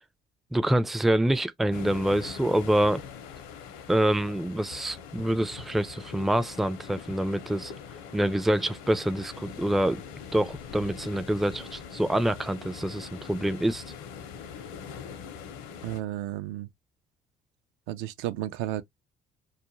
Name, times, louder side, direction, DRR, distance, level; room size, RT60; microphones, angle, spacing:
voice 1, 0.5-3.0 3.9-7.7 8.1-10.0 10.3-13.8, right 1 dB, ahead, 0.3 m, -26 dB
sound 1, 1.7-16.0, left 7 dB, 75° left, 0.7 m, -43 dB
voice 2, 15.8-16.7 17.9-18.8, right 14 dB, 70° right, 0.4 m, -32 dB
2.4 x 2.1 x 3.0 m
hypercardioid pair, 60°, 21 cm